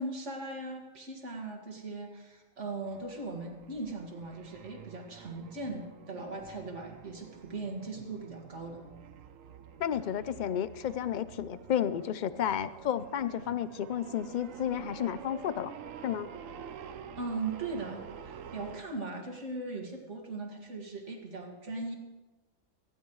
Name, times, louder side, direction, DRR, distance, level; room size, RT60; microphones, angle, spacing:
voice 1, 0.0-8.9 17.2-21.9, right 3 dB, 65° right, 1 dB, 2.4 m, -39 dB
sound 1, 2.8-18.8, right 8 dB, 80° right, 1.1 m, -48 dB
voice 2, 9.8-15.7 16.0-16.3, left 10 dB, 55° left, 14 dB, 0.5 m, -32 dB
19.0 x 15.5 x 3.2 m, 1.2 s
omnidirectional pair, 1.3 m